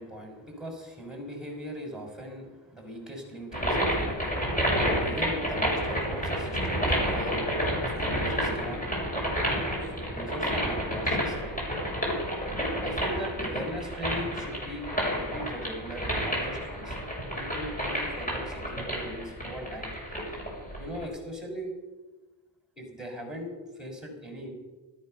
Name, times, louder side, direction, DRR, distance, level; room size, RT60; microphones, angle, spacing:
voice 1, 0.0-7.6 7.8-8.8 9.9-11.5 12.8-14.9 15.1-16.9 17.4-19.9 20.8-21.7 22.8-24.5, equal, ahead, 2 dB, 6.7 m, -39 dB
sound 1, 3.5-21.1, equal, 15° left, 7.2 m, -30 dB
13.5 x 13.5 x 6.8 m, 1.2 s
supercardioid pair, 70°, 49 cm